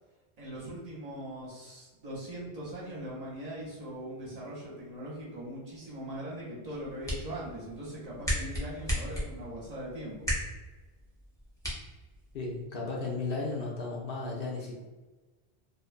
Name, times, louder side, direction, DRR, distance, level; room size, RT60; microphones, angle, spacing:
voice 1, 0.4-10.3, right 1 dB, 45° right, -5 dB, 0.7 m, -41 dB
sound 1, 6.6-12.6, equal, 5° left, 0.5 m, -37 dB
voice 2, 12.3-14.8, left 3 dB, 65° left, -2 dB, 0.7 m, -34 dB
2.5 x 2.1 x 2.4 m, 1.2 s
omnidirectional pair, 1.1 m